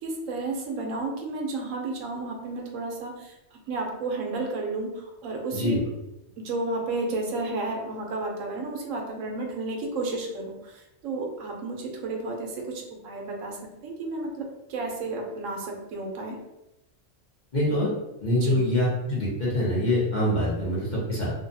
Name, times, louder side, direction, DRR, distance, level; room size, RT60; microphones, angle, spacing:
voice 1, 0.0-3.3 3.7-5.9 6.4-13.6 13.8-16.4 18.3-18.6, right 2 dB, 80° right, 1 dB, 1.0 m, -32 dB
voice 2, 17.5-17.9 18.2-21.3, left 1 dB, 45° left, -7 dB, 0.7 m, -25 dB
2.7 x 2.2 x 2.5 m, 0.95 s
omnidirectional pair, 1.4 m